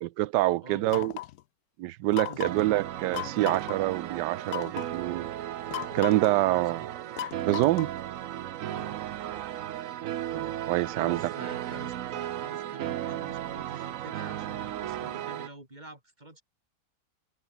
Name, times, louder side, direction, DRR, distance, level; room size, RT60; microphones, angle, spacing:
voice 1, 0.0-1.1 1.8-5.3 5.9-6.8 7.5-7.9 10.3-11.3, right 16 dB, 85° right, 1.2 m, -26 dB
voice 2, 0.6-1.1 2.2-2.6 6.5-6.9 8.7-9.0 10.8-16.4, right 1 dB, 25° right, 5.2 m, -47 dB
sound 1, 0.9-1.4 2.1-2.7 3.1-3.8 4.5-4.9 5.7-6.4 7.2-8.0, left 14 dB, 75° left, 1.1 m, -36 dB
sound 2, 2.4-15.5, right 12 dB, 60° right, 0.9 m, -35 dB
omnidirectional pair, 1.8 m